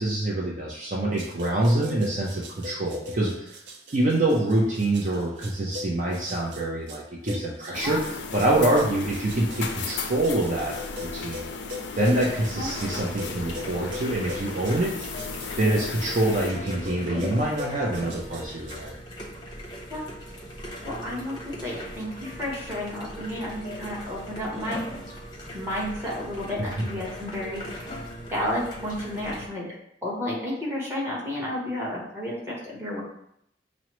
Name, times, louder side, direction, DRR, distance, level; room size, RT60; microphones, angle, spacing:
voice 1, 0.0-3.5 3.9-8.0 8.3-10.7 11.0-11.4 12.0-14.9 15.6-18.9, right 1 dB, 45° right, -3 dB, 0.5 m, -25 dB
sound 1, 1.2-18.9, left 2 dB, 90° right, 0.6 m, -41 dB
sound 2, 7.7-16.5, left 5 dB, 70° left, 0.4 m, -36 dB
sound 3, 12.0-29.5, equal, 25° left, 0.7 m, -39 dB
voice 2, 20.8-21.4 21.6-24.8 25.5-28.0 28.3-29.6 30.0-33.0, left 1 dB, 15° right, -5 dB, 1.1 m, -31 dB
6.0 x 2.0 x 3.0 m, 0.73 s
head